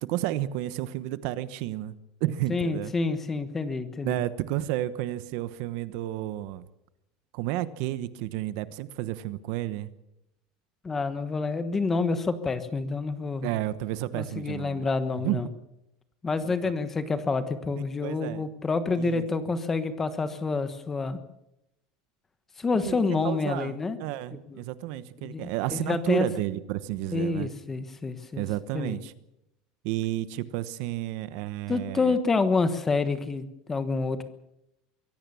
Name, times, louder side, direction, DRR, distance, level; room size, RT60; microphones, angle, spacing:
voice 1, 0.0-1.9 2.2-2.9 4.0-6.7 7.3-9.9 13.4-14.9 15.2-15.4 16.4-16.7 18.0-18.4 19.0-19.2 22.9-27.5 28.4-29.1 29.8-32.2, right 14 dB, 50° right, 14 dB, 1.1 m, -31 dB
voice 2, 2.5-4.2 10.8-13.5 14.1-15.5 16.2-21.2 22.6-24.0 24.5-24.6 25.2-26.3 27.1-28.5 28.7-29.0 31.7-34.2, left 4 dB, 10° left, 11 dB, 1.3 m, -28 dB
24.0 x 16.5 x 7.0 m, 0.85 s
cardioid pair, 180°, 2 cm